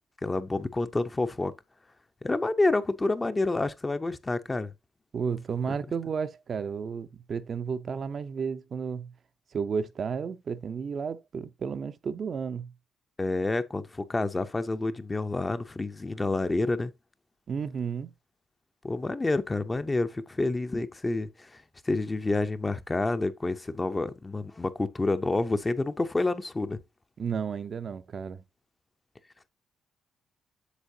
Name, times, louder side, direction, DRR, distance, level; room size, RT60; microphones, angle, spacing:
voice 1, 0.2-1.5 2.2-4.7 5.7-5.8 13.2-16.9 18.8-26.8, left 2 dB, 20° left, 0.7 m, -28 dB
voice 2, 5.1-9.1 9.5-12.7 17.5-18.1 27.2-28.4, right 6 dB, 50° right, 0.7 m, -32 dB
8.3 x 6.3 x 2.7 m
cardioid pair, 90°, 0 cm